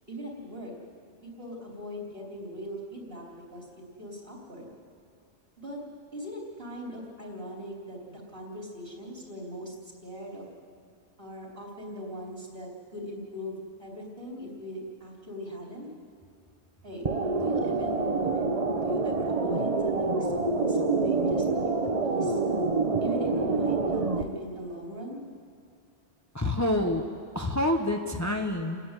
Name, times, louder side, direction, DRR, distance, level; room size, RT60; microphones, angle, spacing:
voice 1, 0.1-0.7 1.2-4.7 5.6-5.8 6.1-9.7 10.0-10.4 11.2-15.9 16.8-17.1 17.4-21.4 21.8-22.4 23.0-25.2, equal, 55° right, -2 dB, 4.2 m, -40 dB
sound 1, 17.0-24.2, right 3 dB, 35° right, 1.0 m, -27 dB
voice 2, 26.3-27.0 27.3-28.8, left 1 dB, 15° left, 3 dB, 1.0 m, -27 dB
29.5 x 10.0 x 9.8 m, 2.3 s
omnidirectional pair, 1.2 m